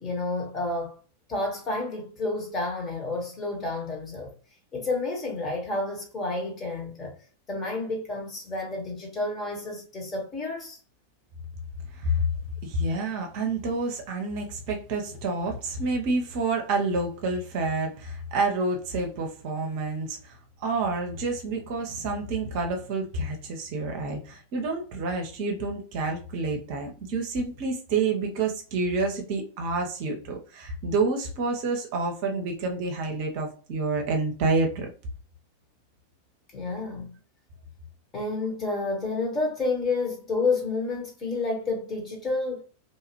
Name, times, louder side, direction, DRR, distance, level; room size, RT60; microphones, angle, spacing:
voice 1, 0.0-1.0 1.3-4.3 4.7-7.1 7.5-10.8 36.5-37.1 38.1-42.6, left 3 dB, 25° left, 1.2 m, -30 dB
voice 2, 11.9-12.3 12.6-34.9, right 3 dB, 45° right, 0.7 m, -28 dB
2.7 x 2.4 x 3.0 m
figure-of-eight pair, 90°, 0 cm